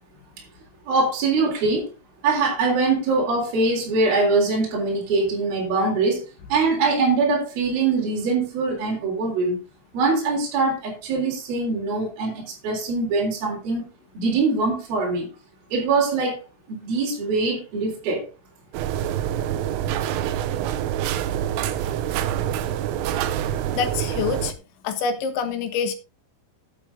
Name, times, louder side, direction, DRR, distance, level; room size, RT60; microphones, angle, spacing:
voice 1, 0.9-1.9 2.2-6.2 6.5-9.6 9.9-13.9 14.2-15.3 15.7-16.4 16.7-18.3, right 3 dB, 50° right, 5.4 m, -23 dB
sound 1, 18.7-24.5, right 10 dB, 85° right, 3.5 m, -26 dB
voice 2, 23.7-24.5 24.8-25.9, left 6 dB, 70° left, 3.7 m, -26 dB
12.0 x 9.1 x 3.9 m
omnidirectional pair, 5.6 m